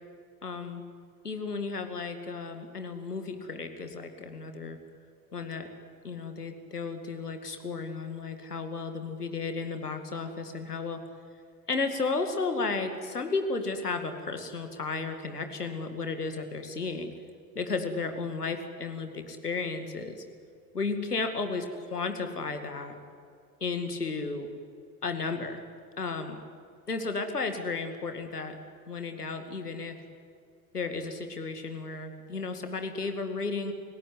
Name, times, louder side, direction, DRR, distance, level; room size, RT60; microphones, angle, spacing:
voice 1, 0.4-0.8 1.2-4.8 5.3-5.7 6.0-11.0 11.7-17.1 17.5-20.2 20.7-23.0 23.6-24.5 25.0-25.6 26.0-26.4 26.9-28.6 28.9-30.0 30.7-33.7, left 4 dB, 85° left, 7 dB, 2.3 m, -33 dB
28.0 x 17.5 x 9.8 m, 2.3 s
figure-of-eight pair, 70°, 45 cm